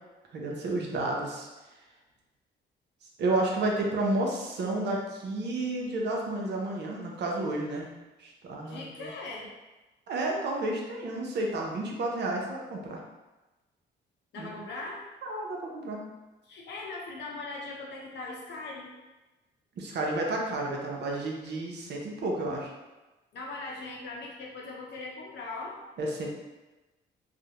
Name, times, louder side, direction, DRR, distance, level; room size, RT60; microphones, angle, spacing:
voice 1, 0.3-1.5 3.2-7.9 8.2-9.1 10.1-13.0 14.4-14.5 15.2-16.0 19.8-22.7 26.0-26.3, right 2 dB, 60° right, -1 dB, 0.6 m, -31 dB
voice 2, 8.7-9.5 14.3-15.0 16.4-18.9 23.3-25.8, left 3 dB, 60° left, -3 dB, 0.7 m, -40 dB
2.4 x 2.0 x 2.9 m, 1.1 s
cardioid pair, 90°, 20 cm